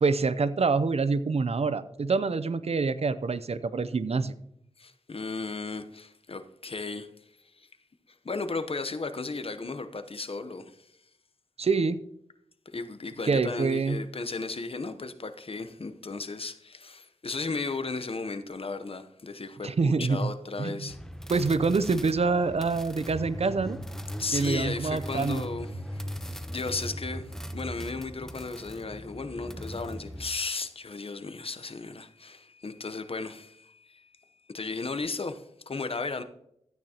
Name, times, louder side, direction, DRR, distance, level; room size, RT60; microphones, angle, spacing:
voice 1, 0.0-4.3 11.6-12.0 13.2-14.0 19.6-20.3 20.6-20.9 21.3-23.8 24.3-25.4, right 4 dB, 60° right, 0.6 m, -26 dB
voice 2, 4.8-7.1 7.6-7.7 8.2-10.9 12.7-21.0 24.2-26.1 26.5-34.1 34.5-36.2, left 3 dB, 50° left, 0.8 m, -35 dB
sound 1, 20.9-30.3, equal, 5° left, 0.9 m, -39 dB
13.5 x 9.0 x 2.9 m
cardioid pair, 50°, 12 cm